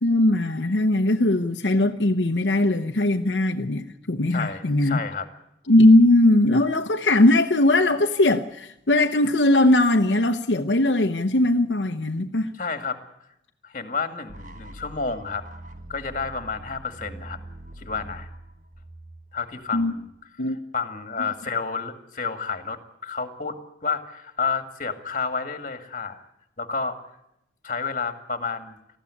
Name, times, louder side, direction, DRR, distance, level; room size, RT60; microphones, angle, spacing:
voice 1, 0.0-5.0 5.7-12.5 19.7-19.9 20.4-20.6, left 1 dB, 85° left, 1.0 m, -20 dB
voice 2, 4.3-5.3 12.6-13.0 13.6-15.4 15.9-17.4 17.8-18.3 19.3-20.1 20.7-26.2 26.6-27.0 27.6-28.8, left 5 dB, 45° left, 2.2 m, -30 dB
sound 1, 14.3-20.2, right 1 dB, 45° right, 1.5 m, -43 dB
19.5 x 14.5 x 9.8 m
head